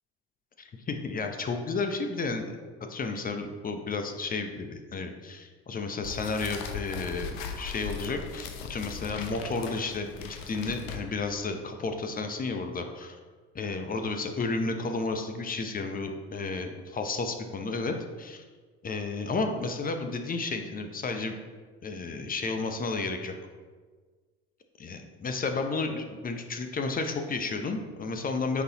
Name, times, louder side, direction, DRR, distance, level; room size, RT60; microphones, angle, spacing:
voice 1, 0.9-2.5 2.9-13.2 13.5-18.4 18.8-21.4 21.8-23.3 24.8-28.6, left 3 dB, 25° left, 6 dB, 0.7 m, -32 dB
sound 1, 6.0-11.3, left 6 dB, 70° left, 0.8 m, -39 dB
9.3 x 3.9 x 2.8 m, 1.5 s
hypercardioid pair, 70°, 33 cm